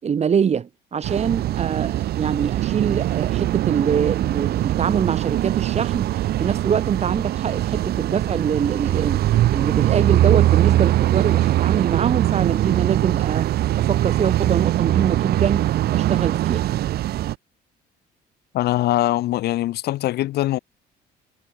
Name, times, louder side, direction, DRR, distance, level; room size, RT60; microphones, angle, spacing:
voice 1, 0.0-13.5 13.8-16.7, right 7 dB, 40° right, 5.0 m, -24 dB
sound 1, 1.0-17.3, right 14 dB, 70° right, 1.6 m, -21 dB
voice 2, 18.5-20.6, left 15 dB, 75° left, 1.9 m, -22 dB
cardioid pair, 110°, 17 cm